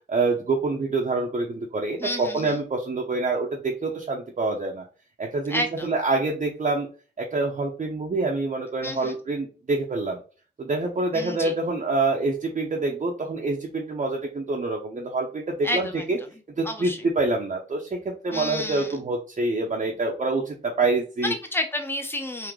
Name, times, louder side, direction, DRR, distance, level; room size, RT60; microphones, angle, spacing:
voice 1, 0.1-4.9 5.2-6.9 7.2-10.2 10.6-16.2 16.6-21.3, right 3 dB, 40° right, -1 dB, 0.7 m, -26 dB
voice 2, 2.0-2.6 5.5-5.9 8.8-9.2 11.1-11.5 15.6-16.1 16.6-17.0 18.3-19.0 21.2-22.5, left 1 dB, 10° left, 5 dB, 0.9 m, -30 dB
3.7 x 2.8 x 3.1 m, 0.36 s
cardioid pair, 65°, 19 cm